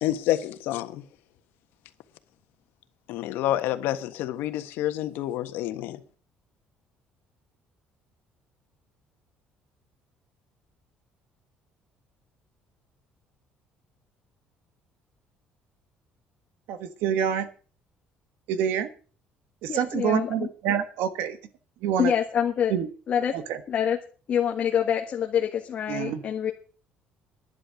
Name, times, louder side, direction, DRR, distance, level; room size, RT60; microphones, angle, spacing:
voice 1, 0.0-1.0 3.1-6.0, left 13 dB, 80° left, 1.5 m, -28 dB
voice 2, 16.7-17.5 18.5-18.9 19.6-21.4 21.8-22.1 22.7-22.9 23.3-23.6 25.9-26.2, right 9 dB, 80° right, 1.4 m, -27 dB
voice 3, 19.7-20.5 22.0-22.7 23.1-23.4 23.7-24.0 24.3-26.5, left 9 dB, 40° left, 1.5 m, -26 dB
11.0 x 10.5 x 6.4 m
cardioid pair, 160°, 4 cm